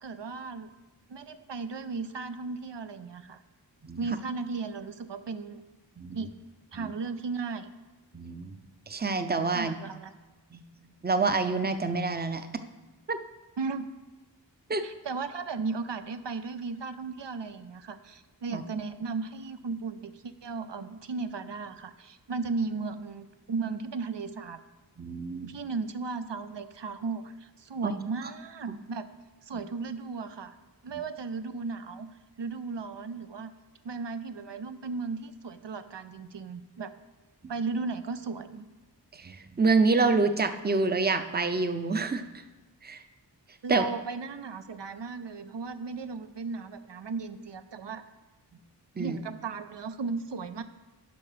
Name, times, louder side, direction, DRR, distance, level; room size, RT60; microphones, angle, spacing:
voice 1, 0.0-0.7 1.1-3.4 4.0-5.6 6.1-6.3 6.7-7.7 9.5-10.2 13.6-13.9 14.8-24.6 25.4-29.1 29.4-30.6 30.8-32.1 32.4-33.5 33.8-36.9 37.5-38.6 43.6-48.0 49.0-50.6, right 4 dB, 75° right, 10 dB, 0.6 m, -35 dB
voice 2, 8.1-8.5 8.9-9.7 10.5-10.6 11.0-12.5 13.1-13.2 14.7-14.8 18.5-18.6 25.0-25.6 27.8-27.9 28.7-28.8 39.2-42.2 42.8-43.0 43.7-43.8 49.0-49.1, right 3 dB, 25° right, 9 dB, 0.6 m, -27 dB
11.5 x 5.4 x 5.0 m, 1.2 s
wide cardioid pair, 45°, 43 cm